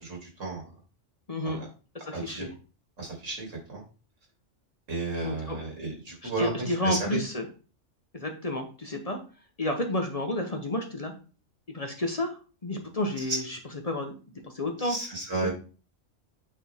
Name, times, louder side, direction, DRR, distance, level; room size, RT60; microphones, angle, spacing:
voice 1, 0.0-0.6 1.4-1.7 2.1-2.5 3.0-3.8 4.9-6.5 6.8-7.2 13.3-13.4 14.8-15.5, right 3 dB, 85° right, -1 dB, 3.0 m, -33 dB
voice 2, 1.3-1.6 1.9-2.5 5.2-5.6 6.2-7.5 8.1-9.2 9.6-11.1 11.7-13.6 13.8-14.2 14.4-15.0, left 1 dB, 30° left, 4 dB, 1.0 m, -31 dB
8.8 x 4.5 x 3.5 m, 0.36 s
omnidirectional pair, 1.3 m